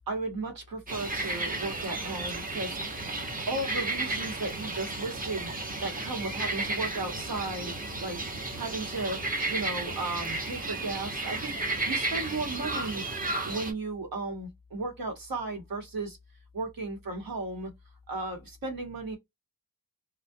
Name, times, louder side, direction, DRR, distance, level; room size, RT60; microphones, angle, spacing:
voice 1, 0.1-2.8 3.5-5.5 5.8-7.7 8.0-8.2 8.6-9.2 9.5-11.6 11.8-13.0 13.4-16.2 16.5-17.7 18.1-19.2, right 2 dB, 80° right, 1.1 m, -35 dB
sound 1, 0.9-13.7, right 2 dB, 25° right, 0.9 m, -33 dB
2.2 x 2.2 x 2.6 m
cardioid pair, 75°, 34 cm